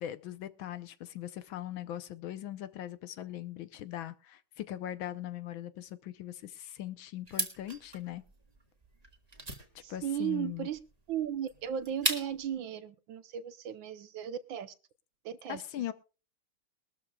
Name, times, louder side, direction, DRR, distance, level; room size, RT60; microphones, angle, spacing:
voice 1, 0.0-8.2 9.7-10.7 15.5-15.9, left 12 dB, 70° left, 1.5 m, -40 dB
sound 1, 7.3-12.5, right 2 dB, 20° right, 1.7 m, -37 dB
voice 2, 9.8-10.8 11.1-14.7 15.2-15.6, right 9 dB, 70° right, 1.4 m, -36 dB
21.5 x 13.0 x 2.3 m
omnidirectional pair, 2.4 m